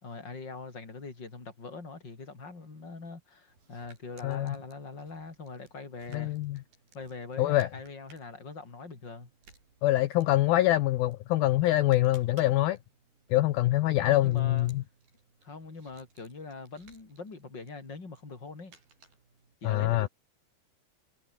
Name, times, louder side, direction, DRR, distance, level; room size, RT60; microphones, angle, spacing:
voice 1, 0.0-6.4 6.9-9.3 14.0-14.7 15.4-18.7 19.6-20.1, left 3 dB, 25° left, 4.8 m, -42 dB
sound 1, 3.5-19.6, right 4 dB, 65° right, 9.5 m, -62 dB
voice 2, 4.2-4.6 6.1-6.6 7.4-7.7 9.8-12.8 13.3-14.8 19.6-20.1, left 15 dB, 75° left, 2.5 m, -25 dB
omnidirectional pair, 4.8 m